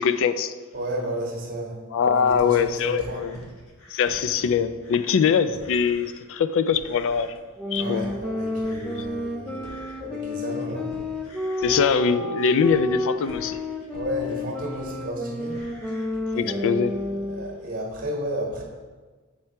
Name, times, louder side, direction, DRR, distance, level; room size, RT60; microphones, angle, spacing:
voice 1, 0.0-0.5 1.9-3.3 3.9-7.4 7.7-8.1 8.8-8.9 11.6-13.6 16.3-16.9, left 6 dB, 60° left, 0.4 m, -22 dB
voice 2, 0.7-1.8 2.0-3.2 7.7-10.9 13.9-15.6 16.3-18.6, equal, 40° right, 1.4 m, -33 dB
sound 1, 2.3-6.2 6.6-7.5 7.8-15.0 15.3-16.7, equal, 75° left, 1.3 m, -47 dB
sound 2, 7.6-17.5, left 1 dB, 5° left, 0.5 m, -30 dB
7.4 x 4.5 x 4.4 m
head